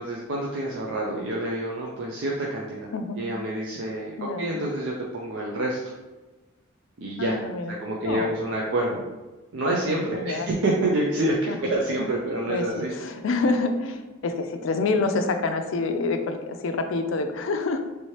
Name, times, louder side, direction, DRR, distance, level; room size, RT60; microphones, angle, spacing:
voice 1, 0.0-2.9 3.2-5.8 7.0-7.4 7.8-9.0 9.5-12.9, right 1 dB, 70° right, -2 dB, 0.5 m, -27 dB
voice 2, 4.2-4.5 7.2-7.7 8.0-8.3 10.1-10.5 11.5-11.6 12.5-17.8, left 3 dB, 75° left, 7 dB, 0.4 m, -27 dB
3.3 x 3.1 x 2.8 m, 1.2 s
head